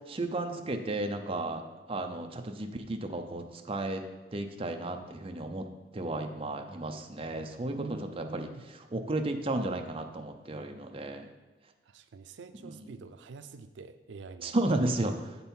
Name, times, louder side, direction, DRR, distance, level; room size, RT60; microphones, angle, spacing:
voice 1, 0.1-1.6 1.9-4.0 4.3-5.6 5.9-11.3 12.6-12.9 14.4-15.4, right 2 dB, 30° right, 4 dB, 0.6 m, -33 dB
voice 2, 7.7-8.6 11.9-14.6, right 4 dB, 90° right, 10 dB, 0.4 m, -46 dB
7.9 x 5.4 x 4.3 m, 1.2 s
head